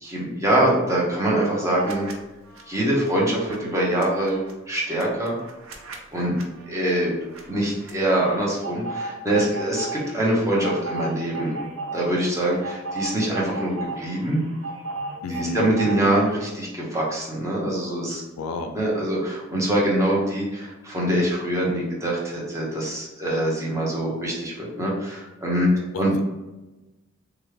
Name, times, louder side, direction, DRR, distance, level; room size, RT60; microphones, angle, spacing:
voice 1, 0.0-2.1 2.7-5.4 6.1-6.4 6.7-7.1 7.5-11.6 11.9-14.4 15.3-18.2 18.7-25.7 26.0-26.1, right 1 dB, 15° right, -4 dB, 0.7 m, -24 dB
sound 1, 1.8-2.1 2.4-16.5, right 2 dB, 75° right, 0.5 m, -36 dB
voice 2, 15.2-15.7 18.4-18.8 25.9-26.2, left 3 dB, 90° left, 5 dB, 0.3 m, -31 dB
3.0 x 2.3 x 3.2 m, 1.1 s
head